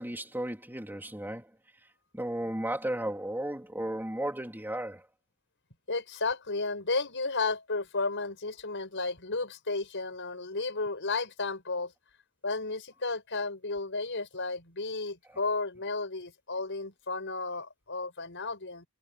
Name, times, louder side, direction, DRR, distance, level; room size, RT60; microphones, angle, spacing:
voice 1, 0.0-1.5 2.1-5.0, right 1 dB, 10° right, 3.7 m, -34 dB
voice 2, 5.9-11.9 12.4-18.9, left 3 dB, 55° left, 6.5 m, -33 dB
head